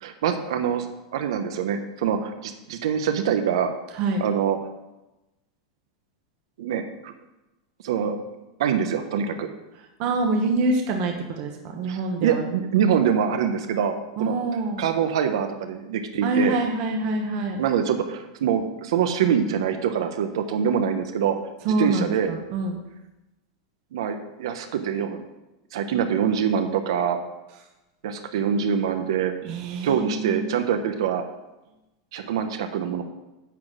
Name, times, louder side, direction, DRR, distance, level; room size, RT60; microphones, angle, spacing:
voice 1, 0.0-3.7 4.2-4.6 6.6-7.1 7.8-8.2 8.6-9.5 11.9-13.9 14.2-14.4 14.8-16.6 17.6-21.4 21.8-22.3 23.9-25.2 25.7-27.2 28.0-29.3 29.8-31.2 32.1-33.0, right 8 dB, 65° right, 7 dB, 0.9 m, -24 dB
voice 2, 10.0-12.4 14.2-14.8 16.2-17.6 21.6-22.8 29.4-30.4, right 2 dB, 35° right, 3 dB, 1.0 m, -25 dB
10.5 x 4.0 x 7.4 m, 0.99 s
supercardioid pair, 180°, 3 cm